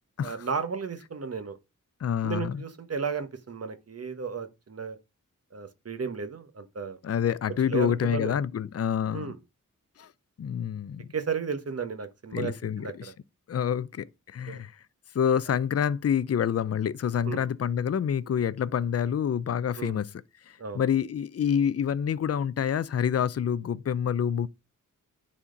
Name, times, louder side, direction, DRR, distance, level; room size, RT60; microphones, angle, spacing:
voice 1, 0.2-1.6 2.2-5.0 5.5-7.0 7.7-8.4 9.1-9.4 11.1-13.1 14.5-14.6 15.5-15.6 17.2-17.4 19.8-20.0 20.6-20.8, right 5 dB, 50° right, 1.2 m, -34 dB
voice 2, 2.0-2.6 7.0-9.3 10.0-10.1 10.4-11.0 12.3-13.1 13.5-14.7 15.1-20.1 20.5-24.5, left 8 dB, 50° left, 0.5 m, -27 dB
9.9 x 4.3 x 5.1 m
wide cardioid pair, 130°, 32 cm